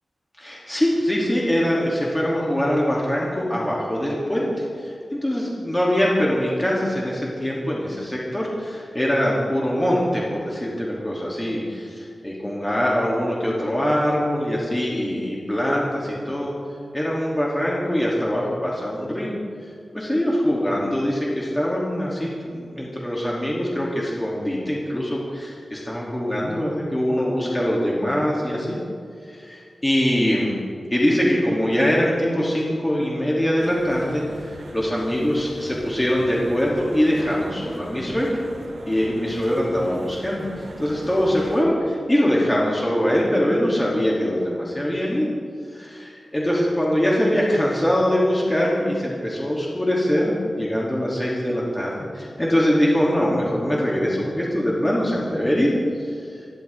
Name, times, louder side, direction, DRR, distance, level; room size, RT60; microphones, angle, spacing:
voice 1, 0.4-16.5 16.9-19.3 19.9-28.8 29.3-30.6 30.9-38.4 38.9-45.3 45.7-55.7 56.0-56.3, equal, 10° left, -5 dB, 2.9 m, -23 dB
sound 1, 33.6-41.6, right 2 dB, 75° right, 2.1 m, -40 dB
29.0 x 13.5 x 3.6 m, 2.3 s
wide cardioid pair, 120°, 0 cm